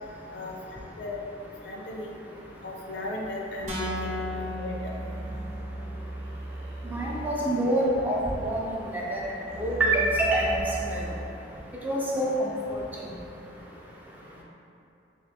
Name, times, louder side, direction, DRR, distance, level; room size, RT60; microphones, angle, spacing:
voice 1, 0.3-1.2 1.6-2.1 2.6-4.8, left 2 dB, 80° left, -1 dB, 0.5 m, -36 dB
sound 1, 3.6-11.2, right 1 dB, 70° right, 0.4 m, -39 dB
sound 2, 3.7-5.8, left 1 dB, 40° right, 0.8 m, -35 dB
voice 2, 6.8-8.2 8.4-9.3 9.6-10.6 10.9-11.0 11.8-12.3 12.7-12.8, right 1 dB, 10° right, -4 dB, 0.3 m, -26 dB
3.5 x 3.3 x 2.7 m, 2.8 s
head